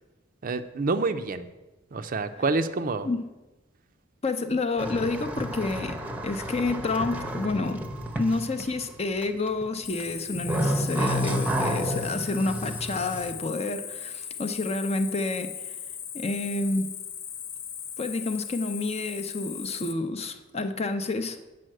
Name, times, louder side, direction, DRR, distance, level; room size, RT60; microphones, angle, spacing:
voice 1, 0.4-1.5 1.9-3.1, right 3 dB, 45° right, 10 dB, 0.5 m, -27 dB
voice 2, 4.2-6.0 6.2-7.9 8.2-15.7 16.1-16.9 18.0-21.4, left 3 dB, 35° left, 8 dB, 0.6 m, -29 dB
sound 1, 4.8-8.9 9.2-9.6 10.0-13.3, right 1 dB, 10° right, 0.7 m, -30 dB
Cricket, 9.8-19.9, left 8 dB, 85° left, 0.7 m, -38 dB
7.7 x 5.4 x 7.6 m, 1.1 s
head